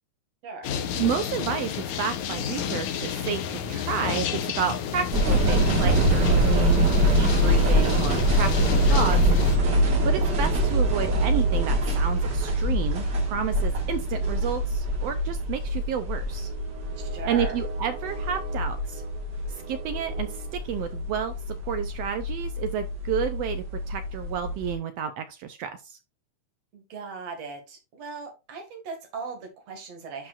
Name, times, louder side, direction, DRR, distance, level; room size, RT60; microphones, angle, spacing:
voice 1, 0.4-0.8 17.0-17.6 26.7-30.3, right 4 dB, 55° right, 3 dB, 3.0 m, -38 dB
sound 1, 0.6-9.6, left 8 dB, 75° left, 2.2 m, -30 dB
voice 2, 1.0-1.7 2.0-6.9 7.1-9.2 10.0-16.5 17.2-19.0 19.7-26.0, right 8 dB, 80° right, 9 dB, 1.5 m, -31 dB
sound 2, 5.1-24.7, right 1 dB, 40° right, 2.0 m, -24 dB
11.5 x 4.8 x 2.5 m, 0.28 s
omnidirectional pair, 3.5 m